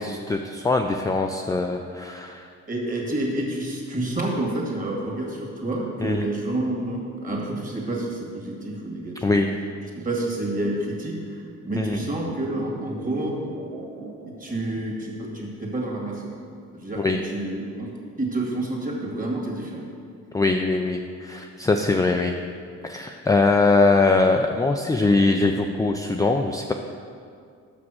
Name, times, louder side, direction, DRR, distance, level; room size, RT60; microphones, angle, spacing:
voice 1, 0.0-2.5 6.0-6.3 9.2-9.5 11.8-12.0 17.0-17.2 20.3-22.4 22.8-26.7, left 3 dB, 10° left, 3 dB, 0.4 m, -22 dB
voice 2, 2.7-9.3 9.9-13.4 14.4-16.4 16.7-19.9, right 1 dB, 25° right, -2 dB, 2.0 m, -29 dB
sound 1, 11.9-15.3 15.5-15.6, right 4 dB, 70° right, 1.2 m, -40 dB
6.1 x 5.9 x 6.2 m, 2.3 s
cardioid pair, 90°, 30 cm